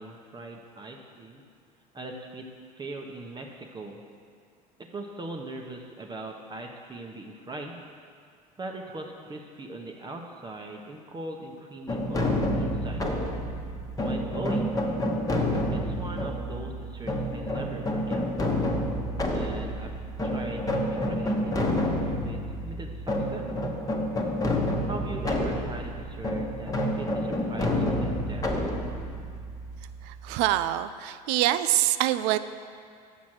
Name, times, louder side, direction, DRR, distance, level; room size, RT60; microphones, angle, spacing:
voice 1, 0.0-1.4 1.9-2.5 2.8-4.0 4.8-7.8 8.6-13.1 14.0-14.7 15.7-18.2 19.3-19.9 20.2-23.5 24.8-28.5, right 2 dB, 20° right, 1 dB, 0.9 m, -40 dB
sound 1, 11.9-30.6, left 1 dB, 15° left, 1.2 m, -29 dB
voice 2, 30.1-32.4, right 14 dB, 60° right, 13 dB, 0.4 m, -25 dB
7.2 x 6.1 x 6.1 m, 2.2 s
hypercardioid pair, 75°, 20 cm